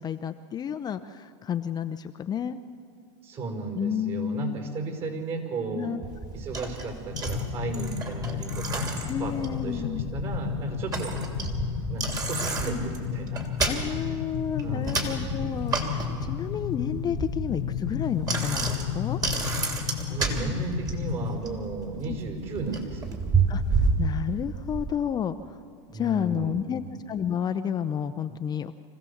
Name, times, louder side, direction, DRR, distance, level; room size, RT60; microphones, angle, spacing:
voice 1, 0.0-2.6 3.7-4.5 5.7-6.0 9.0-10.0 13.6-19.2 22.1-22.2 23.5-25.6 25.9-26.8 27.1-28.7, left 8 dB, 25° left, 9 dB, 0.6 m, -31 dB
voice 2, 3.2-5.9 6.3-8.9 9.2-11.2 11.9-13.4 14.6-15.3 19.9-23.2 25.9-26.9, right 3 dB, 40° right, 4 dB, 5.5 m, -34 dB
Bicycle, 6.0-24.9, right 4 dB, 25° right, 3.0 m, -31 dB
sound 1, 7.1-21.4, left 9 dB, 75° left, 1.2 m, -33 dB
25.5 x 16.0 x 7.2 m, 2.2 s
supercardioid pair, 120°, 15 cm